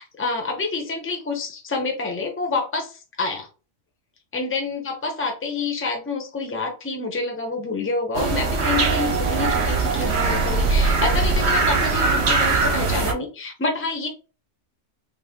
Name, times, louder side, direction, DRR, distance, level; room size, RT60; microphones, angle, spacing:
voice 1, 0.0-3.5 4.3-14.1, left 3 dB, 15° left, 2 dB, 0.6 m, -27 dB
sound 1, 8.1-13.1, right 4 dB, 60° right, 1.0 m, -21 dB
3.5 x 2.1 x 3.5 m, 0.34 s
omnidirectional pair, 1.3 m